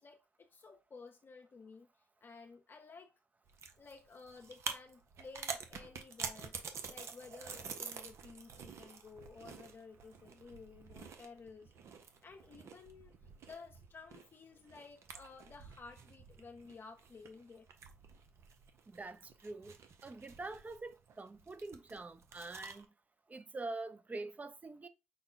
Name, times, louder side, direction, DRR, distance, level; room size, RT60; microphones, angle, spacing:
voice 1, 0.0-1.9 2.2-3.1 3.8-6.6 6.9-11.7 12.2-13.1 13.4-17.7, left 4 dB, 50° left, 0.6 m, -54 dB
sound 1, 3.5-22.8, right 6 dB, 70° right, 0.8 m, -48 dB
voice 2, 18.9-19.8 20.0-22.9 23.3-24.9, right 2 dB, 30° right, 0.7 m, -45 dB
5.4 x 2.3 x 3.8 m
hypercardioid pair, 45°, 5 cm